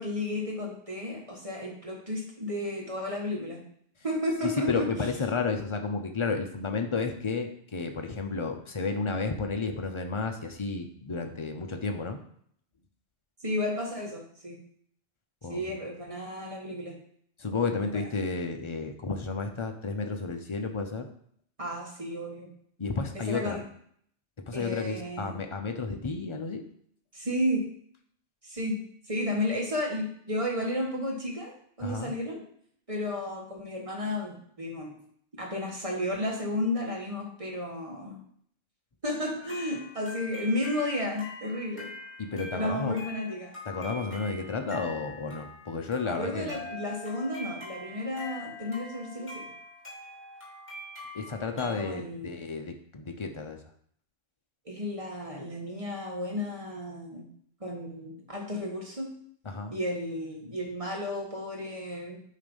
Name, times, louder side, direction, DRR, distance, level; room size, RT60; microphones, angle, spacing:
voice 1, 0.0-3.6 4.0-5.1 13.4-14.6 15.5-17.0 17.8-18.0 21.6-22.5 23.1-23.6 24.5-25.4 27.1-27.6 28.4-28.8 29.1-32.4 32.9-35.0 35.4-38.2 39.0-41.9 42.5-43.5 46.0-49.5 51.6-52.4 54.6-57.3 57.6-59.1 59.7-62.2, left 1 dB, 25° right, -1 dB, 1.5 m, -33 dB
voice 2, 4.7-12.2 15.4-15.8 17.4-21.1 22.8-23.6 24.5-26.6 31.8-32.1 42.2-43.0 43.7-46.6 51.1-53.6 59.5-59.7, left 4 dB, 35° left, 5 dB, 0.5 m, -32 dB
sound 1, 39.4-51.8, left 1 dB, 10° left, 2.6 m, -44 dB
8.4 x 3.3 x 5.3 m, 0.64 s
omnidirectional pair, 1.3 m